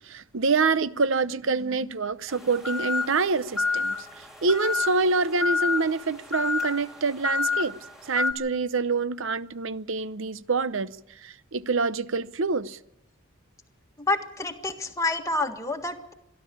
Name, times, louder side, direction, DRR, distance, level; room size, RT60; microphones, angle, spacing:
voice 1, 0.1-7.7 8.1-10.9 11.2-12.8, right 4 dB, 60° right, 16 dB, 0.7 m, -26 dB
sound 1, 2.3-8.3, left 4 dB, ahead, 3.4 m, -29 dB
voice 2, 14.0-16.1, left 2 dB, 15° left, 4 dB, 1.6 m, -28 dB
25.5 x 12.0 x 8.6 m, 0.85 s
head